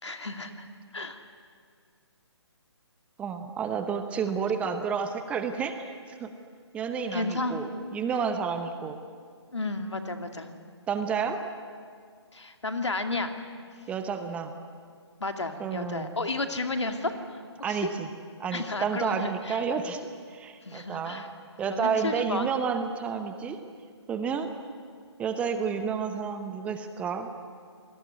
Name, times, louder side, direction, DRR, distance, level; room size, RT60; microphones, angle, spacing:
voice 1, 0.0-0.7 0.9-1.2 4.2-4.4 4.6-4.8 7.1-7.6 9.5-10.5 12.3-13.3 13.8-13.9 15.2-17.9 18.5-19.7 20.6-21.3 21.6-22.5, left 2 dB, 75° left, 6 dB, 2.6 m, -32 dB
voice 2, 3.2-6.3 6.7-9.0 10.9-11.4 13.9-14.5 15.6-16.1 17.6-18.1 18.4-21.2 21.6-23.6 24.1-24.5 25.2-27.3, right 6 dB, 10° right, 8 dB, 0.8 m, -30 dB
27.5 x 19.0 x 9.6 m, 2.1 s
figure-of-eight pair, 145°, 15 cm